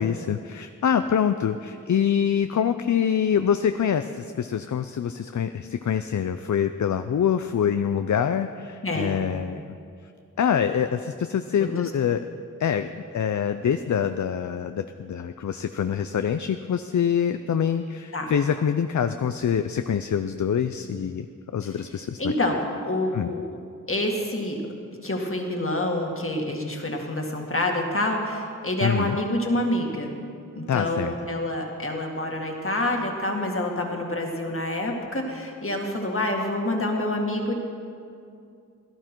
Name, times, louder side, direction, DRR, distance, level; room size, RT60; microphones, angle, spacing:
voice 1, 0.0-9.6 10.4-12.2 12.6-21.3 21.5-22.3 23.1-23.3 28.8-29.2 30.7-31.1, left 8 dB, 65° left, 9 dB, 0.5 m, -25 dB
voice 2, 8.8-9.2 11.6-11.9 18.1-18.3 21.6-21.7 22.2-23.6 23.9-24.6 25.0-30.1 30.6-37.5, left 1 dB, 40° left, 1 dB, 2.0 m, -27 dB
17.0 x 12.0 x 4.5 m, 2.4 s
wide cardioid pair, 55°, 32 cm